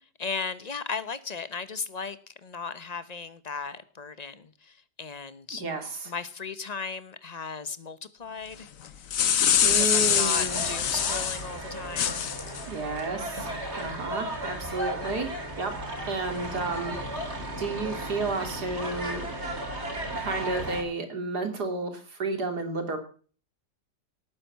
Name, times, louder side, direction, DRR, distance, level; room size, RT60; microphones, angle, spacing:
voice 1, 0.2-5.6 6.0-8.7 9.7-12.2, left 5 dB, 30° left, 13 dB, 0.8 m, -36 dB
voice 2, 5.5-6.1 9.6-10.6 12.7-13.5 13.8-15.3 15.6-15.7 16.1-17.3 17.6-19.3 20.1-23.0, right 3 dB, 60° right, 5 dB, 3.3 m, -31 dB
sound 1, 8.9-11.4 12.0-12.6, left 9 dB, 55° left, 1.2 m, -24 dB
sound 2, 10.3-20.8, right 1 dB, 35° right, 3.7 m, -35 dB
18.0 x 9.4 x 5.7 m, 0.42 s
omnidirectional pair, 1.9 m